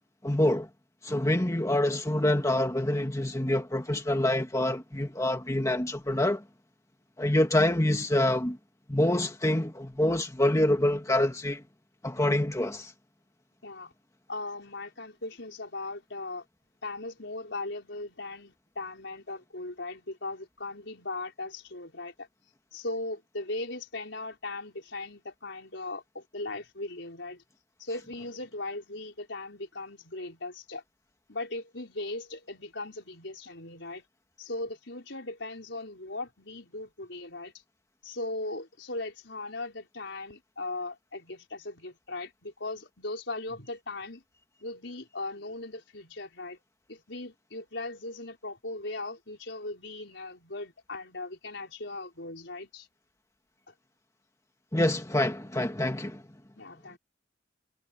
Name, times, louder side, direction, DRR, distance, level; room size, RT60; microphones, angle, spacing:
voice 1, 0.2-0.7 1.0-6.4 7.2-8.6 8.9-11.6 12.0-12.9 54.7-56.2, left 1 dB, 15° left, 1.8 m, -26 dB
voice 2, 14.3-16.4 16.8-22.3 22.7-27.4 27.8-30.8 31.3-34.0 34.4-37.5 38.0-44.2 44.6-46.6 46.9-52.9 53.7-53.8 56.6-57.0, left 2 dB, 70° left, 5.2 m, -38 dB
head